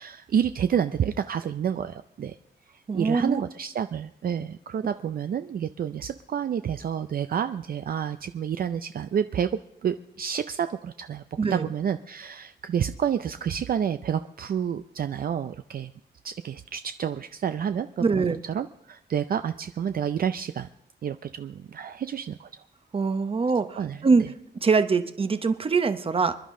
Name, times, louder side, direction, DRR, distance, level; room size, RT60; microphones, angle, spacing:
voice 1, 0.0-2.4 2.9-9.5 9.8-11.2 11.5-15.9 16.2-20.7 21.0-22.6 23.8-24.3, right 8 dB, 55° right, 10 dB, 0.5 m, -29 dB
voice 2, 2.9-3.4 11.4-11.7 18.0-18.4 22.9-24.3 24.6-26.4, right 4 dB, 30° right, 11 dB, 0.8 m, -23 dB
26.0 x 11.5 x 3.7 m, 0.78 s
wide cardioid pair, 165°, 19 cm